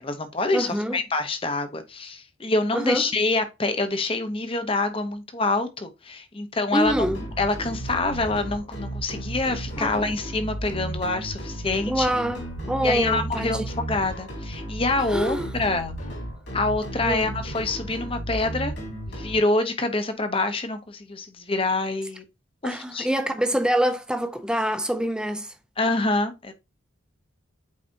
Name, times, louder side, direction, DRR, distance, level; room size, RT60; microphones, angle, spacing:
voice 1, 0.0-6.9 7.4-12.1 12.8-16.0 16.5-18.7 19.1-22.2 22.6-23.1 25.8-26.5, left 2 dB, 25° left, 0.8 m, -26 dB
voice 2, 0.5-1.0 2.7-3.1 6.7-7.2 9.8-10.1 11.9-13.7 15.1-15.6 17.0-17.4 22.6-25.5, equal, 5° right, 0.6 m, -26 dB
sound 1, 6.8-19.4, right 1 dB, 60° left, 2.9 m, -34 dB
8.5 x 4.2 x 2.7 m
head